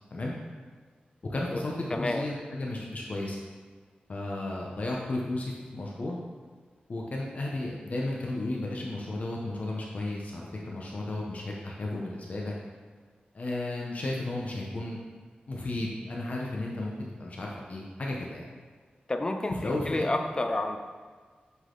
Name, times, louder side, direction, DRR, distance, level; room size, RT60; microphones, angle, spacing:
voice 1, 1.3-3.4 4.1-6.2 6.9-12.5 13.3-15.0 15.5-18.4 19.5-20.1, left 2 dB, 50° left, -2 dB, 0.9 m, -33 dB
voice 2, 1.9-2.2 19.1-19.6 19.9-20.8, left 2 dB, 25° left, 6 dB, 0.5 m, -29 dB
8.1 x 4.0 x 3.9 m, 1.6 s
wide cardioid pair, 130°, 3 cm